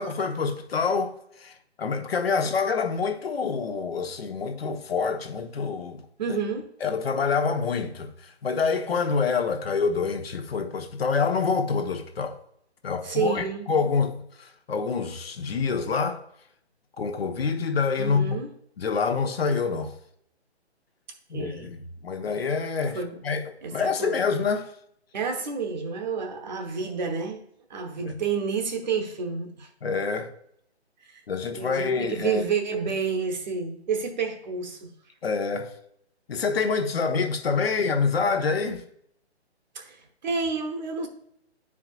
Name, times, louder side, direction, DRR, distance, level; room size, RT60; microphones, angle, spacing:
voice 1, 0.0-6.0 6.3-6.4 6.8-12.4 12.8-16.2 17.0-18.4 18.8-19.9 21.3-24.7 28.0-28.1 29.8-30.3 31.3-32.4 35.2-35.7 36.3-38.8, left 5 dB, 60° left, 1.0 m, -27 dB
voice 2, 6.2-6.7 13.0-13.7 18.0-18.5 21.3-21.7 22.9-23.2 23.6-24.2 25.1-27.4 27.7-29.7 31.1-31.2 31.5-34.9 39.7-41.1, right 5 dB, 40° right, 1.1 m, -29 dB
11.0 x 4.9 x 2.3 m
hypercardioid pair, 155°, 34 cm